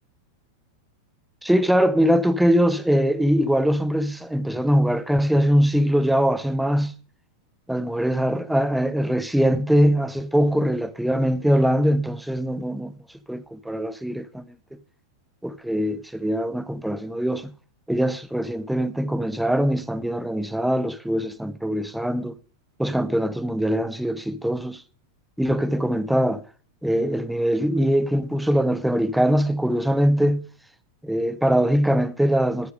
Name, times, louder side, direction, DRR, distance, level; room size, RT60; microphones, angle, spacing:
voice 1, 1.4-6.9 7.7-12.9 13.3-14.4 15.4-17.5 17.9-22.3 22.8-24.8 25.4-26.4 26.8-30.5 31.0-32.7, equal, ahead, 0.8 m, -22 dB
11.5 x 8.8 x 6.4 m
figure-of-eight pair, 90°, 0 cm